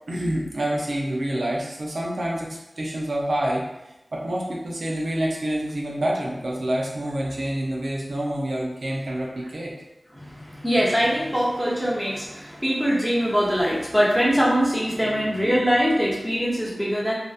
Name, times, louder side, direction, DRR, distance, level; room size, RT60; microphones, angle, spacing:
voice 1, 0.1-3.7 4.1-9.7, right 1 dB, 80° right, -3 dB, 0.4 m, -27 dB
voice 2, 10.1-17.1, equal, ahead, -6 dB, 0.8 m, -22 dB
2.7 x 2.0 x 2.3 m, 0.93 s
cardioid pair, 40°, 0 cm